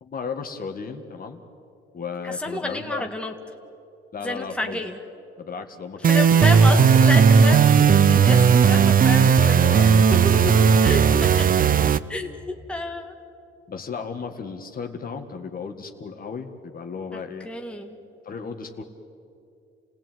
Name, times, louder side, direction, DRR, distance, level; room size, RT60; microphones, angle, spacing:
voice 1, 0.0-1.4 1.9-3.1 4.1-4.8 5.4-6.5 9.1-10.1 13.7-17.5 18.2-18.8, left 5 dB, 45° left, 5 dB, 1.9 m, -35 dB
voice 2, 2.2-3.3 4.2-5.0 6.0-11.5 12.1-13.1 17.1-18.0, left 2 dB, 5° left, 3 dB, 1.7 m, -30 dB
sound 1, 6.0-12.0, right 6 dB, 45° right, 0.7 m, -16 dB
28.5 x 17.0 x 9.4 m, 2.6 s
cardioid pair, 90°, 20 cm